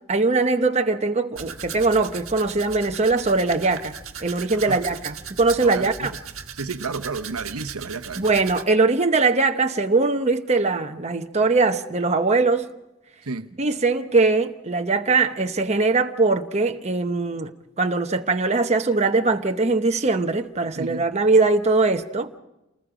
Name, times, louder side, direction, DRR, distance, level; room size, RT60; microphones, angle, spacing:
voice 1, 0.0-3.9 4.2-6.1 8.2-12.7 13.6-17.5 17.8-22.3, right 3 dB, 30° right, 0.9 m, -21 dB
Domestic sounds home sounds, 1.4-8.6, right 7 dB, 65° right, 1.4 m, -38 dB
voice 2, 5.6-6.2 6.5-8.3 13.2-13.5 20.8-21.1, right 4 dB, 85° right, 1.0 m, -32 dB
29.0 x 19.5 x 5.0 m
head